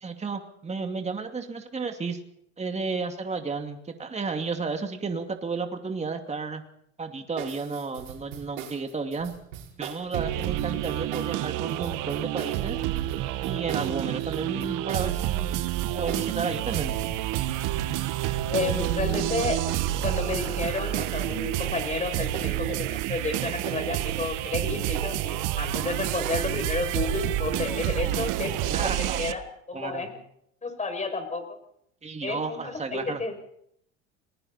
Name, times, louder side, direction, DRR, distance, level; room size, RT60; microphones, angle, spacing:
voice 1, 0.0-2.2 2.6-6.6 7.0-9.3 9.8-12.8 13.4-15.5 15.9-17.0 28.7-29.2 29.7-30.1 32.0-33.2, right 4 dB, 20° right, 5 dB, 2.5 m, -32 dB
sound 1, 7.4-22.7 23.0-26.5, right 9 dB, 85° right, 4.8 m, -41 dB
sound 2, 10.1-29.3, right 14 dB, 60° right, 1.5 m, -29 dB
voice 2, 18.5-29.4 29.7-30.1 30.6-31.4 32.2-33.3, left 3 dB, 20° left, 6 dB, 6.8 m, -31 dB
30.0 x 20.5 x 4.3 m, 0.72 s
hypercardioid pair, 90°, 36 cm